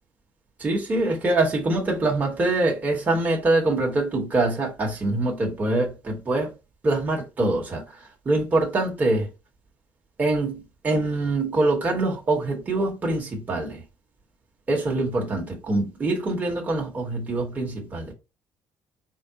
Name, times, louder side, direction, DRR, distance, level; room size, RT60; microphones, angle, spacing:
voice 1, 0.6-6.5 6.8-8.0 8.2-9.3 10.2-13.8 14.7-18.1, right 2 dB, 20° right, 0.9 m, -24 dB
4.5 x 2.0 x 3.8 m
cardioid pair, 175°, 8 cm